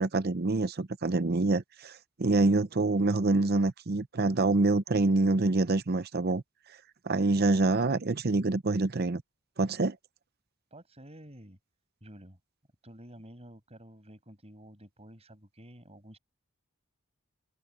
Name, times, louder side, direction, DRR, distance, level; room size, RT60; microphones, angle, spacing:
voice 1, 0.0-6.4 7.0-9.2 9.6-10.0, right 2 dB, 45° right, 0.7 m, -26 dB
voice 2, 10.7-11.6 12.0-12.4 12.8-16.2, equal, 30° right, 6.3 m, -51 dB
head